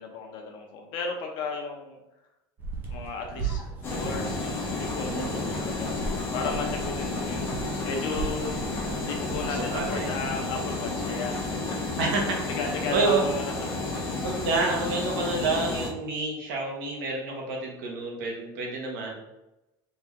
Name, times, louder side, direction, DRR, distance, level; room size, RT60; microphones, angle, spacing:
voice 1, 0.0-2.0 2.9-3.6 3.9-8.6 9.0-11.6 12.0-14.0, left 4 dB, 45° left, 2 dB, 0.8 m, -35 dB
sound 1, 2.6-10.4, right 4 dB, 15° right, 0.7 m, -38 dB
sound 2, 3.8-15.9, left 3 dB, 25° left, 1.0 m, -31 dB
voice 2, 5.1-5.7 9.5-10.1 12.0-12.4 12.9-13.2 14.2-19.2, right 3 dB, 80° right, 0 dB, 1.3 m, -29 dB
4.1 x 2.9 x 3.5 m, 0.94 s
cardioid pair, 175°, 11 cm